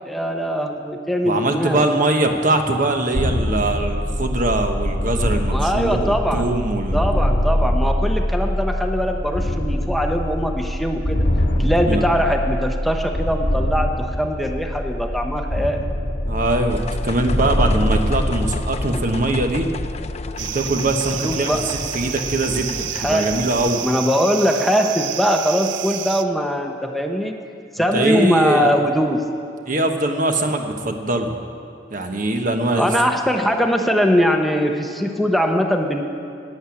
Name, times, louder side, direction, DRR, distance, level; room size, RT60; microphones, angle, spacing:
voice 1, 0.1-1.8 5.5-6.5 6.9-11.3 11.6-15.8 21.2-21.7 22.9-23.5 23.8-27.4 27.7-29.3 32.8-36.0, equal, ahead, 3 dB, 0.8 m, -21 dB
voice 2, 1.2-7.0 11.9-12.0 16.2-19.7 20.3-23.8 27.9-28.8 29.7-31.3 31.9-32.9, right 2 dB, 50° right, 5 dB, 1.1 m, -22 dB
sound 1, 3.1-20.8, equal, 85° left, 1.8 m, -23 dB
sound 2, 16.7-23.7, left 3 dB, 35° left, 0.5 m, -33 dB
sound 3, 20.4-26.2, right 11 dB, 90° right, 0.5 m, -30 dB
12.0 x 8.6 x 9.7 m, 2.5 s
head